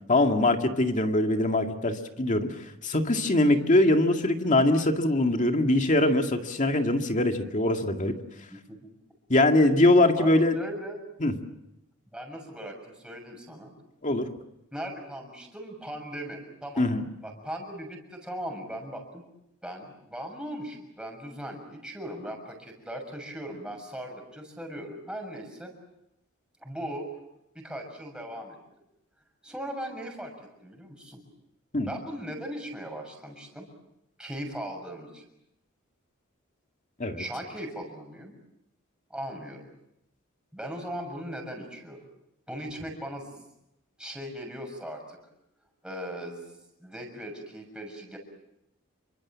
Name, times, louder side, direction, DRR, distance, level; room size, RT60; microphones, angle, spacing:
voice 1, 0.1-2.5 2.8-8.1 9.3-10.6 11.2-11.3 14.0-14.3 16.8-17.0 31.7-31.9 37.0-37.2, left 1 dB, 35° left, 4 dB, 2.2 m, -22 dB
voice 2, 10.2-11.0 12.1-13.7 14.7-16.8 17.2-19.2 19.6-25.7 26.6-27.1 27.5-28.6 29.4-30.3 30.6-31.2 31.8-33.7 34.2-35.3 37.2-38.3 39.1-39.7 40.5-42.0 42.5-43.4 44.0-45.2 45.8-48.2, equal, 5° right, 2 dB, 6.6 m, -38 dB
28.5 x 25.0 x 7.4 m, 0.83 s
head